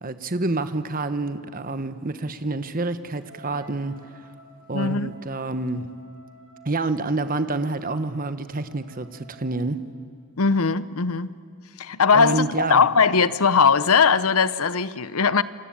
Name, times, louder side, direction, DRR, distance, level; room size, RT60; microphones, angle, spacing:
voice 1, 0.0-4.0 4.7-5.9 6.6-9.8 12.1-12.8, right 2 dB, 40° right, 11 dB, 1.2 m, -28 dB
Wind instrument woodwind instrument, 3.2-9.9, right 3 dB, 60° right, 4.0 m, -52 dB
voice 2, 4.7-5.1 10.4-11.3 11.8-15.4, left 5 dB, 75° left, 16 dB, 0.8 m, -20 dB
28.0 x 24.5 x 8.7 m, 2.3 s
head